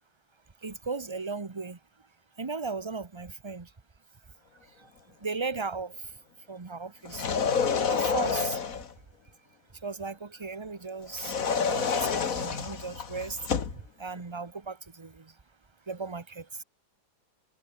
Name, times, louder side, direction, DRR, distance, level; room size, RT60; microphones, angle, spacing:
voice 1, 0.6-1.8 2.4-3.7 4.8-4.9 5.2-5.9 6.5-7.3 7.9-8.6 9.8-13.4 14.0-15.3 15.9-16.6, right 4 dB, 25° right, 0.7 m, -36 dB
sound 1, 7.0-8.9 11.1-13.8, left 6 dB, 50° left, 2.0 m, -28 dB
omnidirectional pair, 2.0 m